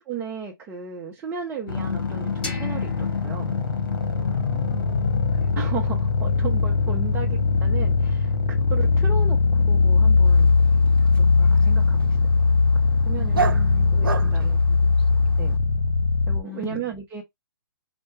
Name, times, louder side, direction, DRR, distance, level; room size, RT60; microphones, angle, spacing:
voice 1, 0.1-3.6 5.4-10.5 11.0-11.1 11.4-12.2 13.1-13.5 13.9-14.6 15.4-15.6 16.3-17.2, right 6 dB, 15° right, 0.6 m, -35 dB
sound 1, 1.7-16.4, left 4 dB, 60° left, 1.3 m, -20 dB
sound 2, 2.4-5.3, left 2 dB, 10° left, 1.3 m, -41 dB
voice 2, 4.2-5.1 13.2-13.9 14.2-15.5 16.4-16.9, left 2 dB, 30° left, 2.0 m, -43 dB
Dog, 10.2-15.6, right 5 dB, 65° right, 0.6 m, -33 dB
4.3 x 2.1 x 4.5 m
figure-of-eight pair, 135°, 12 cm